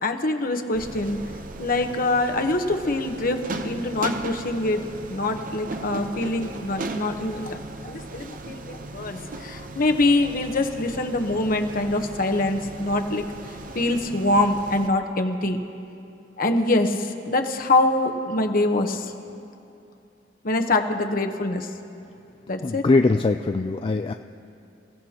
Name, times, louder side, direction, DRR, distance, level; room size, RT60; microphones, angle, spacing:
voice 1, 0.0-1.2 1.6-15.6 16.4-19.1 20.4-21.7 22.5-22.8, left 2 dB, 50° left, 5 dB, 1.0 m, -24 dB
sound 1, 0.7-14.9, right 2 dB, 50° right, 0.8 m, -37 dB
voice 2, 22.6-24.1, left 3 dB, 30° left, 6 dB, 0.3 m, -21 dB
29.5 x 16.0 x 2.9 m, 2.7 s
head